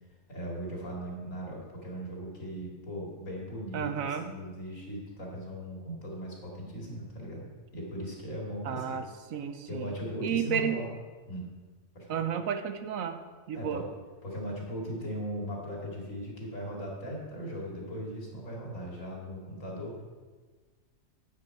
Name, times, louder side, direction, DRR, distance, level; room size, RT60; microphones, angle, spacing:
voice 1, 0.3-7.5 7.7-9.0 9.7-10.9 11.3-11.5 11.9-12.2 13.5-13.9 14.2-20.0, equal, 70° left, -2 dB, 3.0 m, -38 dB
voice 2, 3.7-4.3 8.6-9.0 9.3-10.0 10.2-10.8 12.1-13.2 13.5-13.8, right 8 dB, 85° right, 9 dB, 1.2 m, -32 dB
9.9 x 9.0 x 4.7 m, 1.4 s
omnidirectional pair, 1.4 m